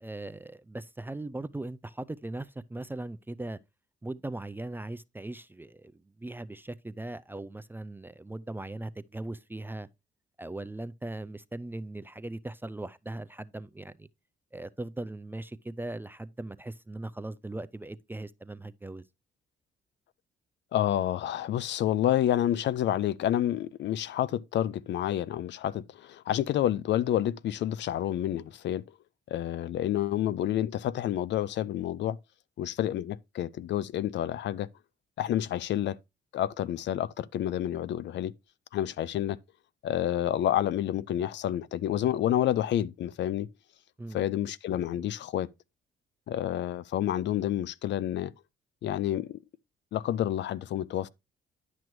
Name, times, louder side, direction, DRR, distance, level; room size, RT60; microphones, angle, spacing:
voice 1, 0.0-3.6 4.0-5.9 6.2-9.9 10.4-14.1 14.5-19.0 44.0-44.2, right 2 dB, 10° right, 0.3 m, -39 dB
voice 2, 20.7-28.8 29.3-32.2 32.6-34.7 35.2-36.0 36.3-38.3 38.7-39.4 39.8-43.5 44.1-45.5 46.3-48.3 48.8-49.4 49.9-51.1, left 11 dB, 65° left, 0.4 m, -29 dB
10.5 x 6.1 x 3.1 m
cardioid pair, 90°, 20 cm